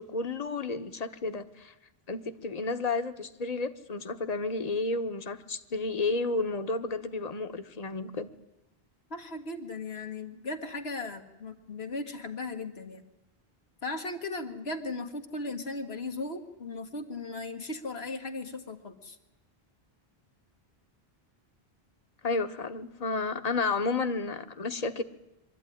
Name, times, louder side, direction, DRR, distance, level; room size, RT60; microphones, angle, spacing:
voice 1, 0.0-1.7 2.1-8.3 22.2-25.0, left 3 dB, 40° left, 9 dB, 1.2 m, -31 dB
voice 2, 9.1-13.0 13.8-19.2, left 2 dB, 85° left, 4 dB, 1.8 m, -37 dB
24.0 x 13.0 x 10.0 m, 0.98 s
omnidirectional pair, 1.0 m